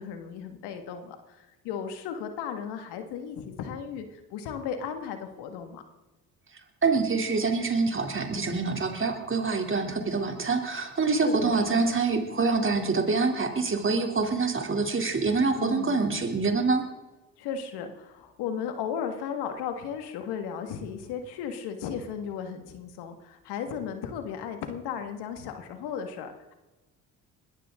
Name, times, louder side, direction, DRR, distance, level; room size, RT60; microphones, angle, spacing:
voice 1, 0.0-5.8 11.2-11.9 15.6-16.2 17.4-26.5, left 7 dB, 75° left, 7 dB, 2.0 m, -35 dB
voice 2, 6.8-16.8, right 4 dB, 30° right, 4 dB, 3.3 m, -26 dB
20.5 x 14.5 x 3.8 m, 1.2 s
supercardioid pair, 65°, 39 cm